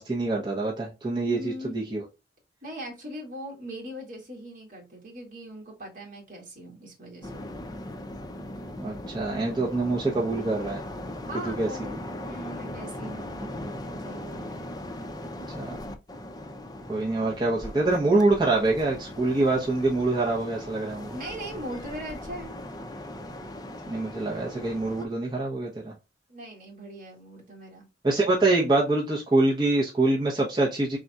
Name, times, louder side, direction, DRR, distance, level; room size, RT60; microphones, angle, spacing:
voice 1, 0.0-2.0 8.8-10.8 11.4-11.7 15.5-15.8 16.9-21.1 23.9-25.9 28.0-31.0, right 2 dB, 25° right, 0.8 m, -25 dB
voice 2, 1.3-1.8 2.6-7.4 11.2-13.5 14.0-14.7 21.1-22.6 26.3-27.9, equal, 50° right, 1.9 m, -40 dB
sound 1, 7.2-25.1, left 1 dB, 20° left, 0.5 m, -39 dB
4.1 x 3.8 x 2.3 m
head